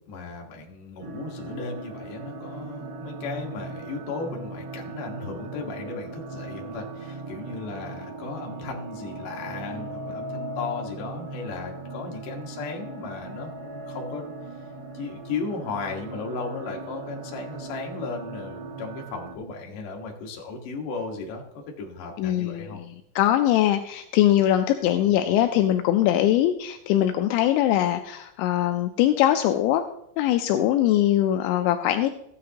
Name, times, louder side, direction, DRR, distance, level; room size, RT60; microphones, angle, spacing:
voice 1, 0.1-14.3 14.9-21.4 21.8-22.8, left 4 dB, 65° left, 0 dB, 2.2 m, -35 dB
sound 1, 1.0-19.4, right 2 dB, 65° right, 3.5 m, -38 dB
voice 2, 22.2-22.9 23.2-29.8 30.2-32.1, left 12 dB, 90° left, 7 dB, 2.6 m, -22 dB
15.0 x 9.3 x 2.9 m, 0.79 s
omnidirectional pair, 5.8 m